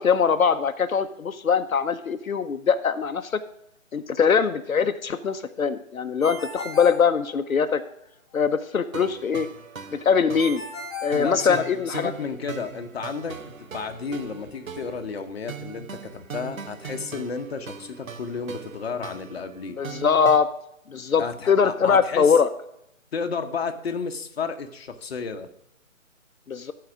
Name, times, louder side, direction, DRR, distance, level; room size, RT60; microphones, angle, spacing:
voice 1, 0.0-3.4 3.9-7.8 8.3-9.5 9.9-10.6 11.0-12.1 19.8-20.5 20.9-22.5 26.5-26.7, left 6 dB, 80° left, 8 dB, 0.8 m, -22 dB
Ringtone, 6.2-7.8 10.4-12.0, left 3 dB, ahead, 1.6 m, -37 dB
sound 1, 8.9-20.4, right 6 dB, 75° right, 1.0 m, -40 dB
voice 2, 11.1-19.8 21.2-22.3 23.1-25.5, left 5 dB, 50° left, 6 dB, 1.0 m, -32 dB
11.5 x 4.9 x 6.0 m, 0.79 s
figure-of-eight pair, 150°, 41 cm